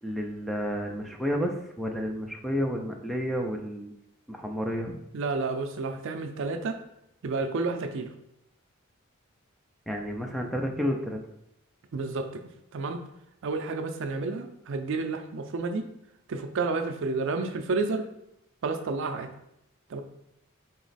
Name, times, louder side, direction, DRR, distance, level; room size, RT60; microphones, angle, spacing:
voice 1, 0.0-3.9 4.3-4.9 9.9-11.2, equal, ahead, 2 dB, 0.3 m, -31 dB
voice 2, 5.1-6.8 7.2-8.1 11.9-12.4 12.7-13.0 13.4-15.8 16.3-18.0 18.6-19.3 19.9-20.0, right 3 dB, 60° right, 6 dB, 0.4 m, -30 dB
4.1 x 3.0 x 4.0 m, 0.82 s
head